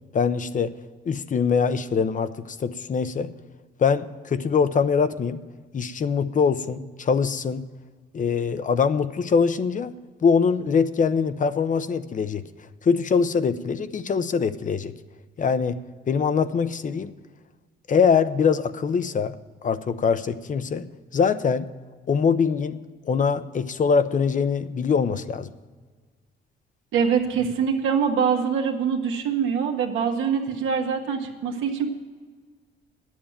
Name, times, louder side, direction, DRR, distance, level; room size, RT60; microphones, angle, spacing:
voice 1, 0.1-0.7 1.1-3.3 3.8-5.4 5.7-7.6 8.1-10.0 10.2-12.4 12.8-14.9 15.4-17.1 17.9-19.4 19.6-21.7 22.1-25.5, left 6 dB, 40° left, 13 dB, 0.6 m, -23 dB
voice 2, 26.9-31.9, right 6 dB, 85° right, 2 dB, 1.6 m, -24 dB
10.0 x 7.4 x 8.7 m, 1.5 s
cardioid pair, 90°, 20 cm